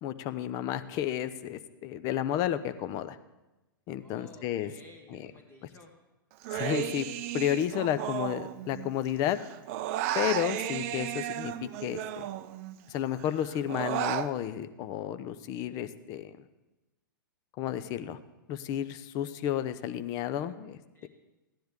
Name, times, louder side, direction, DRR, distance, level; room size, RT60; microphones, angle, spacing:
voice 1, 0.0-3.2 3.9-4.7 5.1-5.3 6.5-7.1 7.3-9.4 10.1-12.2 12.9-16.5 17.6-18.2 18.5-21.1, left 11 dB, 30° left, 12 dB, 0.6 m, -32 dB
voice 2, 4.0-5.9 20.9-21.1, left 2 dB, 15° left, 1 dB, 1.2 m, -54 dB
Human voice, 6.4-9.1 9.3-12.8 13.2-14.3, right 12 dB, 40° right, 0.5 m, -34 dB
15.0 x 10.5 x 3.6 m, 1.0 s
figure-of-eight pair, 110°, 12 cm